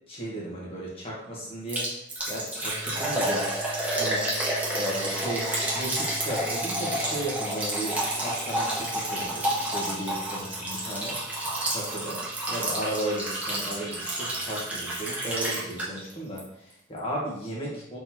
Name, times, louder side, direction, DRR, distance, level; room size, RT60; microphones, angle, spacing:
voice 1, 0.1-1.9 2.2-3.6 4.0-4.2 4.7-11.2 11.7-12.2 12.5-18.0, right 1 dB, 30° left, -5 dB, 1.2 m, -35 dB
Liquid, 1.7-16.1 16.4-16.5 17.0-17.1, right 1 dB, 10° right, 0.8 m, -30 dB
sound 1, 2.7-13.7, left 2 dB, 60° left, 1.2 m, -46 dB
3.9 x 3.8 x 2.9 m, 0.74 s
head